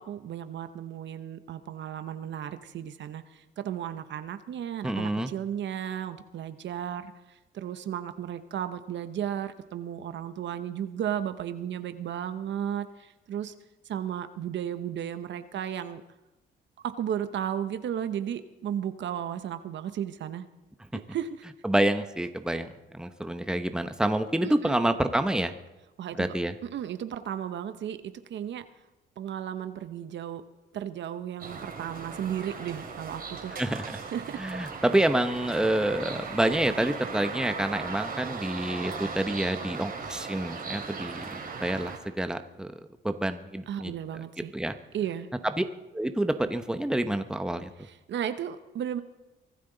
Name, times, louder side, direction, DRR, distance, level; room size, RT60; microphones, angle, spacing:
voice 1, 0.0-7.1 7.5-13.5 13.9-16.0 16.8-20.5 20.9-21.5 24.4-24.8 26.0-26.3 26.6-28.6 29.2-30.4 30.7-33.5 34.1-34.4 43.7-44.5 44.9-45.3 47.8-49.0, right 9 dB, 65° right, 11 dB, 0.9 m, -34 dB
voice 2, 4.8-5.3 21.6-25.5 26.1-26.5 33.6-34.0 34.4-42.7 43.0-43.9 44.5-44.7 45.4-45.6 45.9-47.7, right 1 dB, 5° right, 8 dB, 0.9 m, -28 dB
sound 1, 31.4-42.0, right 5 dB, 50° right, 3.0 m, -38 dB
24.0 x 13.0 x 4.0 m, 1.0 s
cardioid pair, 90°, 20 cm